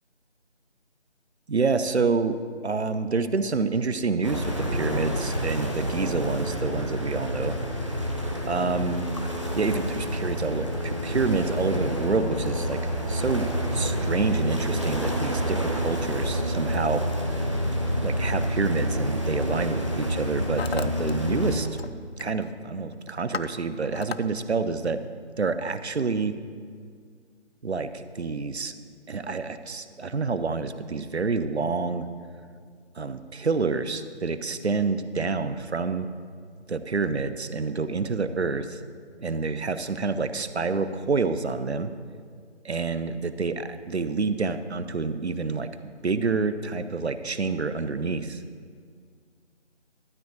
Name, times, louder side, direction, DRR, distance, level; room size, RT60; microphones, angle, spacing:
voice 1, 1.5-2.4 2.6-7.6 8.4-9.1 9.6-12.8 13.1-13.5 13.7-17.0 17.9-21.7 22.2-25.0 25.4-26.3 27.6-28.7 29.1-32.0 33.0-36.1 36.7-38.8 39.2-41.9 42.6-48.4, right 4 dB, 70° right, 11 dB, 0.7 m, -28 dB
sound 1, 4.2-21.6, equal, 25° right, 0.7 m, -28 dB
Hammer, 18.6-18.8 19.6-19.9 20.1-21.1 21.4-21.9 22.2-22.5 22.9-24.2, left 5 dB, 60° left, 0.5 m, -36 dB
12.5 x 4.7 x 8.1 m, 2.1 s
figure-of-eight pair, 170°, 35 cm